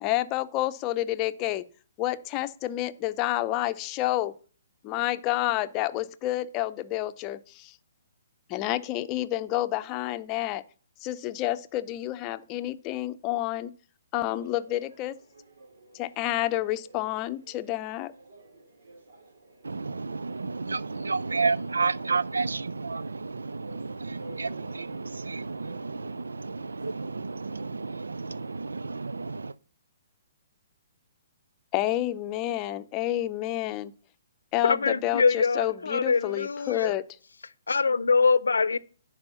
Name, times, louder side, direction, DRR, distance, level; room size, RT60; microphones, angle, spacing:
voice 1, 0.0-1.6 2.0-4.3 4.8-7.8 8.5-10.6 11.0-13.7 14.1-15.2 15.9-18.1 31.7-33.9 34.5-37.0, left 15 dB, 30° left, 0.6 m, -29 dB
sound 1, 14.1-29.4, right 2 dB, 70° right, 2.5 m, -52 dB
voice 2, 19.6-29.5, right 4 dB, 90° right, 0.4 m, -31 dB
voice 3, 34.6-36.9 37.7-38.8, left 4 dB, 85° left, 0.6 m, -24 dB
10.5 x 4.9 x 7.0 m
hypercardioid pair, 135°, 0 cm